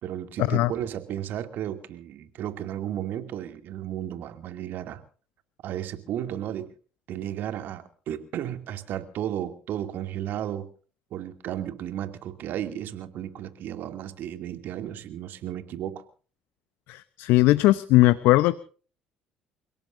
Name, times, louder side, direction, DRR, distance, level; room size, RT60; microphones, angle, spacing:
voice 1, 0.0-5.0 5.6-6.7 7.1-10.7 11.1-16.0, right 11 dB, 60° right, 8 dB, 2.6 m, -34 dB
voice 2, 16.9-18.5, left 17 dB, 70° left, 16 dB, 0.8 m, -19 dB
29.5 x 17.5 x 2.7 m, 0.41 s
hypercardioid pair, 60°, 4 cm